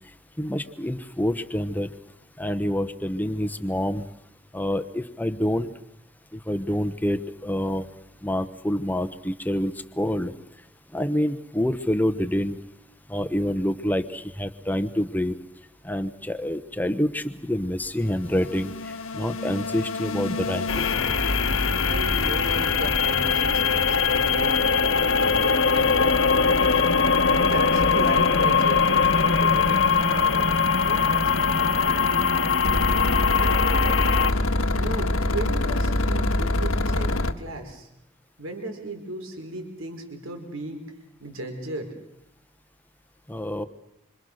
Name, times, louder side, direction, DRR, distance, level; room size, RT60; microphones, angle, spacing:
voice 1, 0.4-1.9 2.4-4.0 4.5-5.7 6.5-7.8 8.2-10.3 10.9-12.5 13.1-15.3 15.8-18.7 19.1-20.9 43.3-43.6, equal, 10° left, 10 dB, 1.0 m, -27 dB
sound 1, 18.0-37.3, left 2 dB, 85° left, 1.6 m, -28 dB
sound 2, 20.7-34.3, left 5 dB, 65° left, 1.2 m, -21 dB
voice 2, 21.8-26.9 27.5-32.1 33.4-34.1 34.6-37.9 38.4-40.8 41.2-41.9, right 2 dB, 80° right, 5 dB, 4.7 m, -36 dB
27.5 x 25.5 x 6.6 m, 0.86 s
head